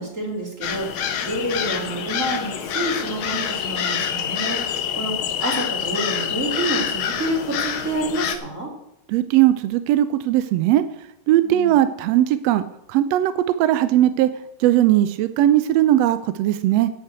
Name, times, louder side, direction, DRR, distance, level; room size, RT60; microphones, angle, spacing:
voice 1, 0.0-8.7 11.4-11.8, right 1 dB, 25° right, 0 dB, 2.8 m, -28 dB
sound 1, 0.6-8.4, left 8 dB, 65° left, 1.3 m, -26 dB
voice 2, 9.1-10.8 11.3-12.6 12.9-14.3 14.6-16.9, right 13 dB, 80° right, 12 dB, 1.5 m, -18 dB
10.5 x 7.0 x 8.0 m, 0.86 s
omnidirectional pair, 3.4 m